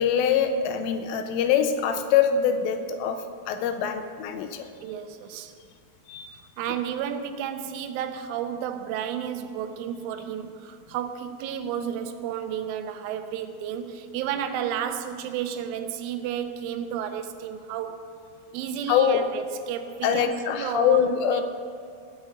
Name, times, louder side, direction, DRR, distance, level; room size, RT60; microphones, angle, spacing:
voice 1, 0.0-3.2 3.5-4.7 6.1-6.3 18.9-19.2 20.0-21.4, left 8 dB, 85° left, 7 dB, 3.4 m, -23 dB
voice 2, 4.8-5.5 6.6-18.1 18.5-21.4, right 9 dB, 80° right, 8 dB, 3.2 m, -32 dB
18.0 x 6.3 x 8.5 m, 2.3 s
omnidirectional pair, 5.7 m